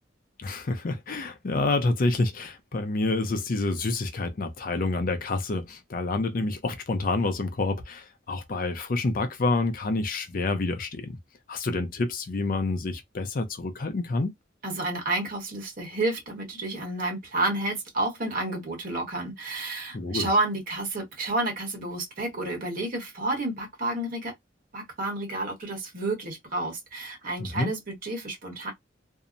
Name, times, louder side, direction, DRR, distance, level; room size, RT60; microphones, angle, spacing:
voice 1, 0.4-11.2 11.5-14.3 19.9-20.3 27.4-27.7, left 3 dB, 50° left, 0.5 m, -28 dB
voice 2, 14.6-24.3 24.7-28.7, right 2 dB, 50° right, 1.2 m, -30 dB
2.7 x 2.0 x 2.5 m
head